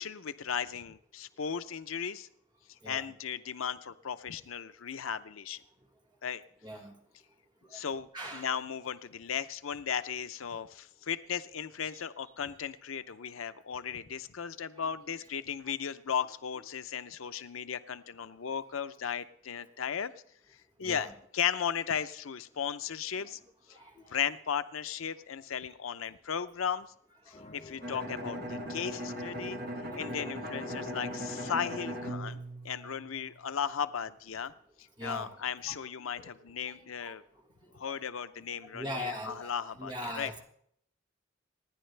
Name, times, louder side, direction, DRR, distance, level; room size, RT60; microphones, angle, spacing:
voice 1, 0.0-2.3 2.9-5.6 6.2-6.4 7.7-20.1 20.8-23.4 24.1-26.9 27.3-29.6 29.9-32.4 32.6-34.5 34.8-37.2 37.7-40.3, left 7 dB, 85° left, 12 dB, 0.6 m, -36 dB
voice 2, 6.6-6.9 8.1-8.5 20.8-21.1 23.7-24.1 35.0-35.4 35.7-35.8 36.2-36.3 36.6-37.1 38.7-40.4, equal, 20° right, 1 dB, 2.0 m, -41 dB
sound 1, 27.3-32.3, left 2 dB, 30° left, 2.1 m, -49 dB
Bowed string instrument, 27.8-33.5, equal, 50° right, 1.5 m, -39 dB
27.0 x 10.0 x 3.3 m, 0.67 s
head